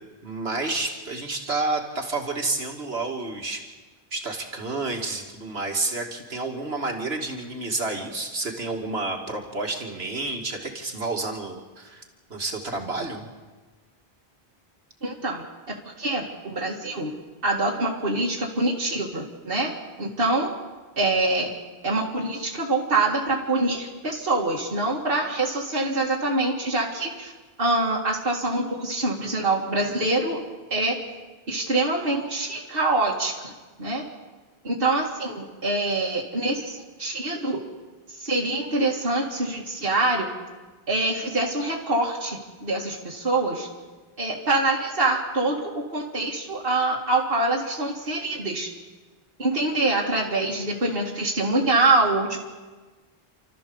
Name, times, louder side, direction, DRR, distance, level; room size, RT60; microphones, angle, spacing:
voice 1, 0.2-3.6 4.1-12.0 12.3-13.3, right 3 dB, 80° right, 2 dB, 2.5 m, -30 dB
voice 2, 15.0-17.1 17.4-19.7 20.0-20.5 21.0-21.5 21.8-27.3 27.6-30.4 30.7-31.0 31.5-33.5 33.8-34.0 34.6-37.6 38.2-40.3 40.9-43.7 44.2-48.7 49.4-52.5, right 2 dB, 60° right, -3 dB, 2.4 m, -25 dB
29.5 x 13.5 x 7.1 m, 1.3 s
omnidirectional pair, 1.0 m